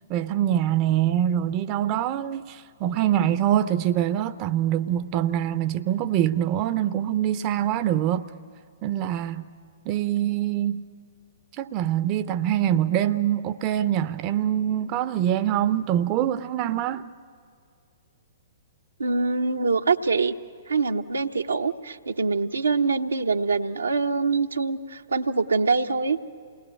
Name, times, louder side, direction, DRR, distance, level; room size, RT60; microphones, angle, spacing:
voice 1, 0.1-8.3 8.8-9.5 9.9-10.8 11.6-17.1, right 11 dB, 35° right, 0.6 m, -24 dB
voice 2, 19.0-20.3 20.7-26.2, right 4 dB, 80° right, 0.8 m, -24 dB
28.0 x 19.5 x 8.3 m
figure-of-eight pair, 115°, 0 cm